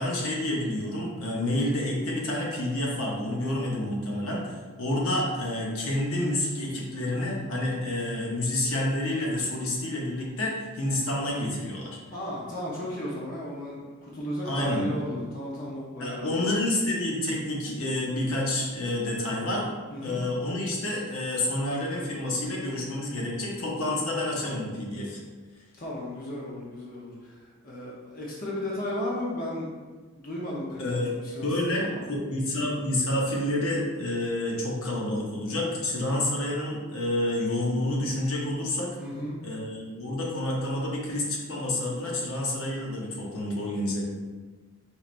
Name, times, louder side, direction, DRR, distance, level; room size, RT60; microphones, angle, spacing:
voice 1, 0.0-12.0 14.4-14.9 16.0-19.7 20.0-25.2 30.8-31.1 31.4-39.0 39.4-44.0, left 1 dB, 70° left, -3 dB, 0.8 m, -29 dB
voice 2, 12.1-16.3 19.9-20.2 25.8-29.7 30.1-32.1 39.0-39.4, left 1 dB, 40° left, -5 dB, 0.7 m, -34 dB
4.5 x 3.2 x 2.5 m, 1.3 s
head